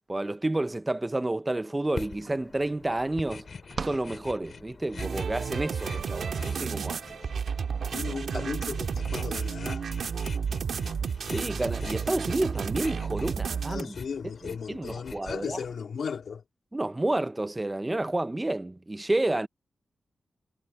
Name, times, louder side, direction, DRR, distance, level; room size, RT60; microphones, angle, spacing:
voice 1, 0.1-3.5 3.8-7.0 8.0-8.5 11.3-13.9 14.4-15.6 16.7-19.5, right 2 dB, 15° right, 0.6 m, -30 dB
sound 1, 1.6-1.7 1.9-5.0, right 5 dB, 50° right, 1.4 m, -42 dB
sound 2, 2.0-15.8, left 5 dB, 50° left, 2.6 m, -45 dB
sound 3, 5.0-13.8, right 6 dB, 70° right, 2.2 m, -32 dB
voice 2, 7.8-9.9 13.7-16.4, left 6 dB, 70° left, 2.7 m, -36 dB
wide cardioid pair, 165°, 0 cm